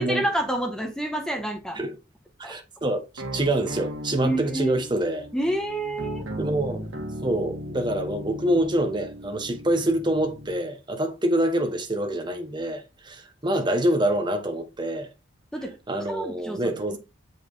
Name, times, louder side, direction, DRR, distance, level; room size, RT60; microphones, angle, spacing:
voice 1, 0.0-1.8 2.4-2.5 4.2-4.8 5.3-6.2 15.5-15.7 16.1-17.0, right 1 dB, 5° left, 1.1 m, -28 dB
voice 2, 2.4-3.0 3.3-5.3 6.4-6.9 7.2-15.1 15.9-17.0, right 1 dB, 20° right, 1.1 m, -26 dB
sound 1, 3.2-10.6, equal, 80° right, 1.6 m, -37 dB
6.9 x 5.2 x 4.0 m
head